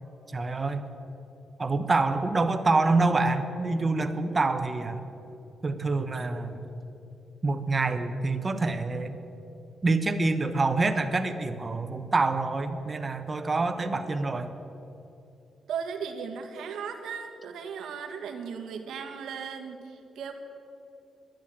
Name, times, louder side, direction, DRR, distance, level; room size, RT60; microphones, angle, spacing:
voice 1, 0.3-0.9 1.6-5.0 5.6-6.7 7.4-9.2 9.8-14.5, right 3 dB, 30° right, 8 dB, 1.0 m, -26 dB
voice 2, 15.7-20.3, right 6 dB, 90° right, 4 dB, 1.4 m, -36 dB
11.0 x 10.0 x 9.0 m, 2.9 s
cardioid pair, 105°, 0 cm